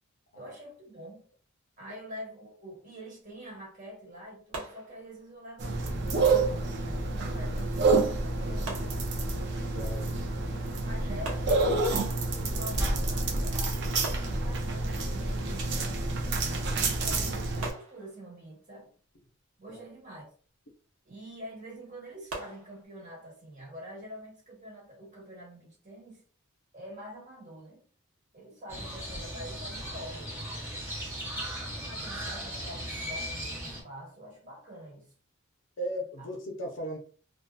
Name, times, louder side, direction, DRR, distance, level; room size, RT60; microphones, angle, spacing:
voice 1, 0.4-1.2 1.8-6.7 7.1-9.0 10.8-11.5 11.8-13.8 14.3-16.1 16.5-18.9 19.6-20.3 21.0-26.2 26.7-27.8 28.3-30.9 31.4-35.1, equal, 35° right, 1.1 m, -46 dB
sound 1, 4.5-5.5 8.6-9.7 11.2-12.2 14.0-15.0 17.6-18.6 22.3-22.8, right 2 dB, 75° right, 0.9 m, -42 dB
sound 2, 5.6-17.7, right 3 dB, 55° right, 0.5 m, -28 dB
voice 2, 9.7-10.1 19.7-19.8 35.8-37.0, equal, 55° left, 0.6 m, -37 dB
Crow, 28.7-33.8, equal, 10° right, 0.7 m, -37 dB
2.6 x 2.3 x 2.2 m
head